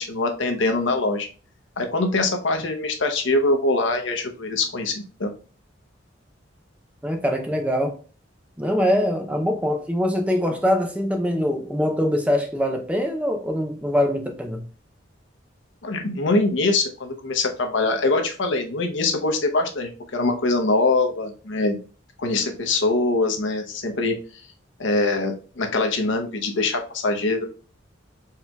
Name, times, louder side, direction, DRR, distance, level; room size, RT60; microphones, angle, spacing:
voice 1, 0.1-1.3 1.8-4.9 5.2-5.3 15.8-21.8 22.2-24.4 24.8-27.4, left 2 dB, 70° left, 0.8 m, -23 dB
voice 2, 7.0-8.0 8.6-14.7, equal, 5° right, 0.5 m, -23 dB
4.4 x 3.6 x 2.2 m
head